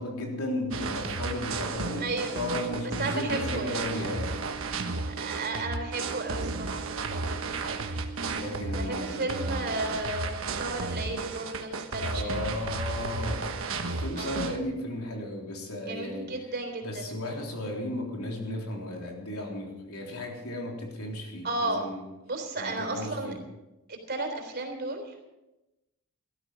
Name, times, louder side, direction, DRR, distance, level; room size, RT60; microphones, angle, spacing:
voice 1, 0.0-4.3 8.3-9.6 12.0-13.4 13.7-16.3 16.8-22.0 22.6-23.4, left 1 dB, 85° left, 0 dB, 3.6 m, -35 dB
sound 1, 0.7-14.6, right 3 dB, 65° right, 1.4 m, -33 dB
sound 2, 2.0-10.0, right 8 dB, 20° right, 1.7 m, -45 dB
voice 2, 2.0-2.4 2.8-3.9 5.1-7.8 8.6-12.6 14.2-14.4 15.8-17.2 21.4-21.9 22.3-23.3 23.9-25.3, right 2 dB, 45° right, 4 dB, 3.5 m, -34 dB
17.0 x 13.0 x 5.1 m, 0.99 s
head